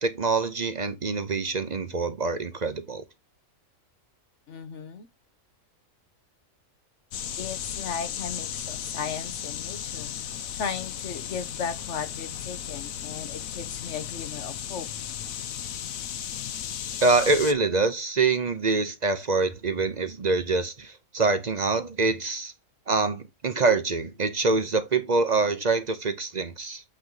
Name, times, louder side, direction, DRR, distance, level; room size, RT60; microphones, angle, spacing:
voice 1, 0.0-3.0 17.0-22.5 22.9-26.8, right 3 dB, 40° right, 0.8 m, -25 dB
voice 2, 4.5-5.1 7.4-10.1 10.5-14.9, left 6 dB, 60° left, 1.3 m, -36 dB
sound 1, 7.1-17.5, left 9 dB, 80° left, 1.2 m, -35 dB
8.5 x 3.1 x 3.8 m
omnidirectional pair, 1.4 m